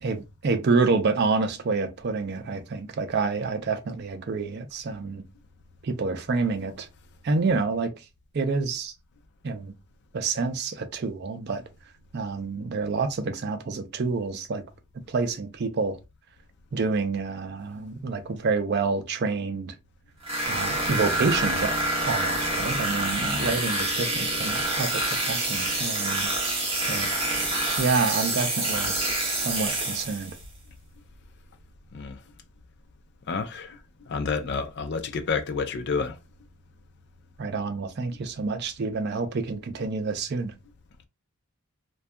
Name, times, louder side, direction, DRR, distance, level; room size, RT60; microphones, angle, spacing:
voice 1, 0.0-5.2 5.8-6.9 7.2-7.9 8.3-8.9 9.4-9.7 10.1-11.6 12.1-14.6 15.1-16.0 16.7-19.7 20.4-21.7 22.1-26.3 26.8-27.1 27.8-29.0 29.4-30.4 37.4-40.5, right 4 dB, 50° right, 0.4 m, -28 dB
sound 1, 20.2-30.4, right 1 dB, 25° right, 0.7 m, -27 dB
voice 2, 23.2-23.5 31.9-32.2 33.3-33.8 34.1-36.2, left 5 dB, 55° left, 0.4 m, -30 dB
2.6 x 2.3 x 2.2 m
head